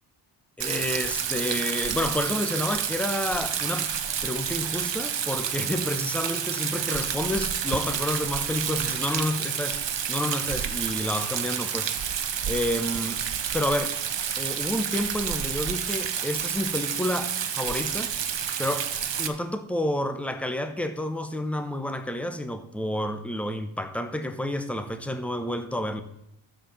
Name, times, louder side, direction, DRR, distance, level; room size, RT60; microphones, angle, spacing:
voice 1, 0.6-3.9 4.2-9.8 10.1-11.9 12.5-13.2 13.5-13.9 14.4-18.1 18.6-18.9 19.2-26.0, left 1 dB, 5° left, 8 dB, 1.1 m, -29 dB
Rain, 0.6-19.3, right 8 dB, 60° right, 1.1 m, -29 dB
12.0 x 7.6 x 5.6 m, 0.78 s
wide cardioid pair, 100°, 49 cm